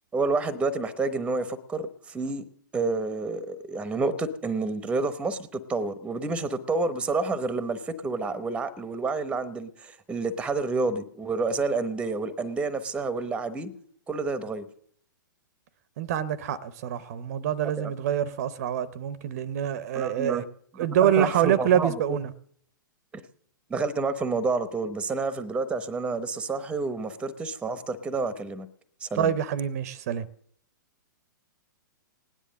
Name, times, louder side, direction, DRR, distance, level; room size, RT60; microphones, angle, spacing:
voice 1, 0.1-2.4 2.7-13.7 14.1-14.7 17.8-17.9 19.9-20.4 21.0-22.2 23.1-23.2 23.7-28.7 29.0-29.3, right 3 dB, 10° right, 0.9 m, -29 dB
voice 2, 16.0-20.4 20.8-22.3 29.1-30.3, right 10 dB, 50° right, 0.7 m, -26 dB
17.0 x 10.0 x 6.4 m
figure-of-eight pair, 110°, 11 cm